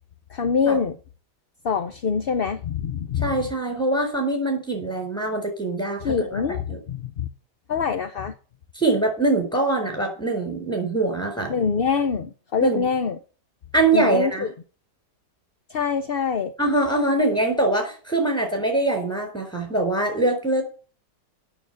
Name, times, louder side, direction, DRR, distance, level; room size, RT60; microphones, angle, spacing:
voice 1, 0.3-1.0 1.6-3.3 6.0-7.3 7.7-8.3 11.5-13.2 13.9-14.5 15.7-16.5, left 6 dB, 50° left, 0.7 m, -24 dB
voice 2, 3.2-6.4 6.7-6.8 8.8-11.6 12.6-12.9 13.7-14.5 16.6-20.6, right 2 dB, ahead, 4.3 m, -23 dB
9.1 x 7.1 x 9.0 m
omnidirectional pair, 1.8 m